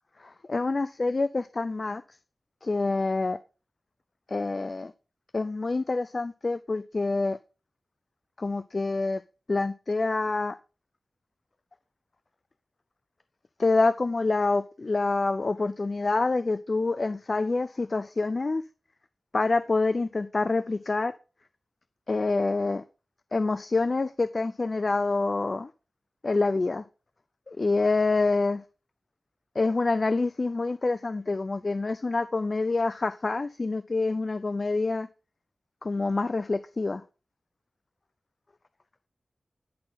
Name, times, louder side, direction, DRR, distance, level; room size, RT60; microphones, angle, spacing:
voice 1, 0.2-2.0 2.6-3.4 4.3-4.9 5.3-7.4 8.4-9.2 9.5-10.6 13.6-18.6 19.3-21.1 22.1-22.8 23.3-25.7 26.2-26.8 27.5-28.6 29.6-35.1 35.8-37.0, left 3 dB, 45° left, 0.5 m, -26 dB
11.0 x 6.3 x 5.7 m
wide cardioid pair, 80°, 0 cm